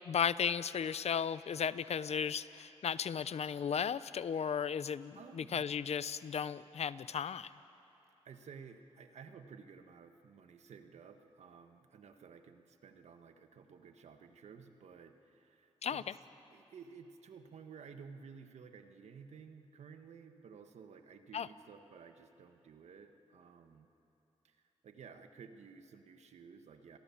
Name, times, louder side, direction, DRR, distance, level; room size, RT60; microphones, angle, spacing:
voice 1, 0.1-7.5 15.8-16.0 21.3-21.5, left 7 dB, 70° left, 16 dB, 0.7 m, -35 dB
voice 2, 5.1-5.7 8.2-16.0 16.5-23.9 24.4-24.6 24.8-27.0, right 6 dB, 85° right, 7 dB, 1.5 m, -54 dB
29.5 x 22.5 x 7.2 m, 2.9 s
cardioid pair, 55°, 11 cm